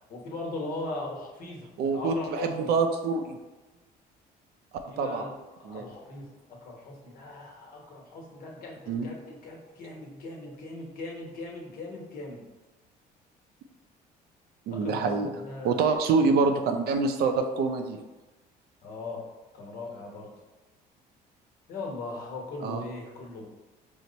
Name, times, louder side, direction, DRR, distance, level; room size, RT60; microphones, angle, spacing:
voice 1, 0.0-2.7 4.9-12.4 14.7-16.3 18.8-19.3 19.5-20.3 21.7-23.4, left 2 dB, 60° left, -1 dB, 1.1 m, -39 dB
voice 2, 1.8-3.4 5.0-5.3 5.7-5.8 8.9-9.1 14.7-15.3 15.6-18.0 22.6-22.8, right 4 dB, 70° right, 6 dB, 0.5 m, -26 dB
4.5 x 2.1 x 3.9 m, 1.1 s
cardioid pair, 110°, 17 cm